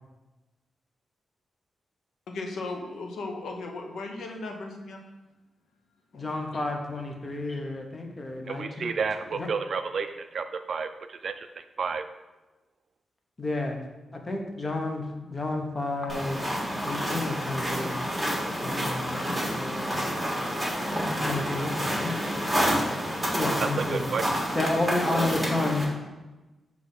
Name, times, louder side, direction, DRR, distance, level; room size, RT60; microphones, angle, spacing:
voice 1, 2.3-5.0 6.1-6.3 6.5-6.6, left 3 dB, 85° left, 3 dB, 0.8 m, -36 dB
voice 2, 6.1-8.9 9.3-9.5 13.4-13.8 14.1-16.4 16.8-18.0 18.6-20.0 21.3-22.2 23.4-24.1 24.5-25.8, left 2 dB, 25° left, 2 dB, 0.8 m, -31 dB
voice 3, 8.5-12.0 23.6-24.7, right 5 dB, 50° right, 9 dB, 0.3 m, -31 dB
sound 1, 16.1-25.8, equal, ahead, 1.6 m, -29 dB
6.0 x 3.2 x 5.4 m, 1.1 s
wide cardioid pair, 150°, 0 cm